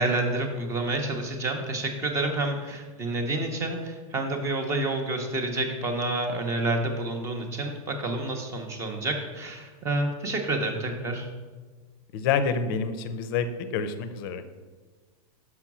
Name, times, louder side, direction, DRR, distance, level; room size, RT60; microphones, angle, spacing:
voice 1, 0.0-11.3, right 2 dB, 15° right, 4 dB, 0.8 m, -29 dB
voice 2, 12.1-14.4, left 6 dB, 40° left, 10 dB, 0.6 m, -27 dB
6.1 x 5.8 x 6.0 m, 1.4 s
supercardioid pair, 165°, 19 cm